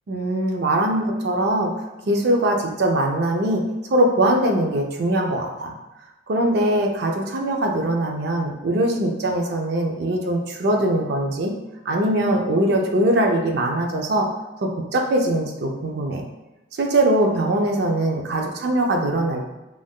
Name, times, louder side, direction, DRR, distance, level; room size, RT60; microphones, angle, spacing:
voice 1, 0.1-1.7 2.1-3.6 3.9-5.7 6.3-11.5 11.9-14.3 14.6-16.3 16.7-19.5, right 1 dB, 55° right, 2 dB, 0.4 m, -21 dB
3.5 x 2.5 x 2.3 m, 1.0 s
head